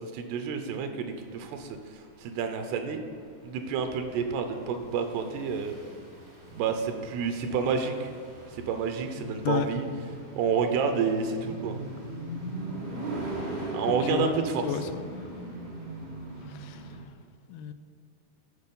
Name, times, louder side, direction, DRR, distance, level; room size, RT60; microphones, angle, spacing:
voice 1, 0.0-3.0 3.4-5.8 6.5-8.1 8.5-9.9 10.4-11.8 13.7-14.6, right 6 dB, 85° right, 6 dB, 2.8 m, -29 dB
sound 1, 1.1-17.0, right 2 dB, 40° right, 2.1 m, -40 dB
voice 2, 9.1-9.7 14.0-14.3 14.6-15.0 16.5-16.9 17.5-17.7, left 8 dB, 80° left, 9 dB, 2.3 m, -32 dB
12.5 x 4.6 x 5.4 m, 2.2 s
omnidirectional pair, 4.6 m